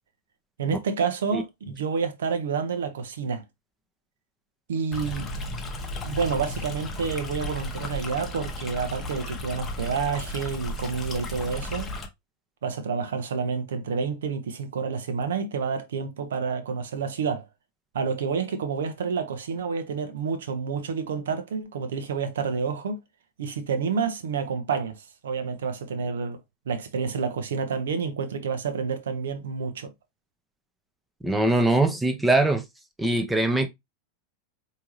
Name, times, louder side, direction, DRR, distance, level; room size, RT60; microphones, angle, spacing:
voice 1, 0.6-3.4 4.7-5.3 6.0-11.9 12.6-17.5 17.9-23.0 23.4-26.4 26.7-29.9, right 5 dB, 60° right, 0.7 m, -29 dB
Stream, 4.9-12.1, left 2 dB, 20° left, 0.9 m, -34 dB
voice 2, 31.2-32.6 33.0-33.7, right 2 dB, 5° right, 0.7 m, -22 dB
4.5 x 2.8 x 3.0 m
figure-of-eight pair, 90°, 0 cm